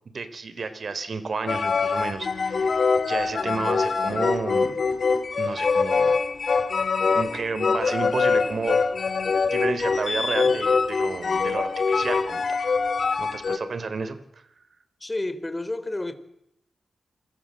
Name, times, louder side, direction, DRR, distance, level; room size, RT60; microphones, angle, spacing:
voice 1, 0.1-2.7 3.1-4.8 5.4-6.1 7.1-8.8 9.5-12.4 13.2-14.4, right 4 dB, 60° right, 3.7 m, -31 dB
sound 1, 1.5-13.6, left 4 dB, 60° left, 2.4 m, -24 dB
voice 2, 15.0-16.1, left 2 dB, 20° left, 3.8 m, -30 dB
27.5 x 22.5 x 7.8 m
cardioid pair, 60°, 0 cm